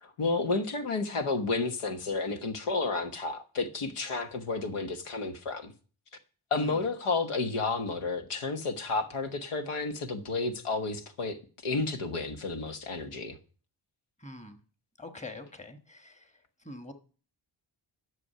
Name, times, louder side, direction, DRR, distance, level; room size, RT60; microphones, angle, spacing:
voice 1, 0.0-5.7 6.5-11.4 11.6-13.4, left 3 dB, 85° left, 1.3 m, -31 dB
voice 2, 14.2-14.6 15.0-16.3 16.6-16.9, left 2 dB, 15° left, 1.3 m, -44 dB
11.0 x 6.4 x 5.6 m
wide cardioid pair, 95°, 49 cm